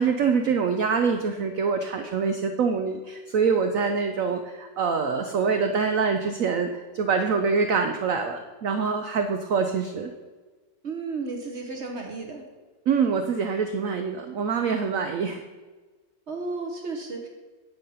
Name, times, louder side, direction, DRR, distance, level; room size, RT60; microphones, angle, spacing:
voice 1, 0.0-10.1 12.9-15.4, right 5 dB, 90° right, 6 dB, 0.7 m, -25 dB
voice 2, 10.8-12.4 16.3-17.3, right 3 dB, 45° right, 2 dB, 0.9 m, -33 dB
9.2 x 5.3 x 5.5 m, 1.3 s
omnidirectional pair, 2.1 m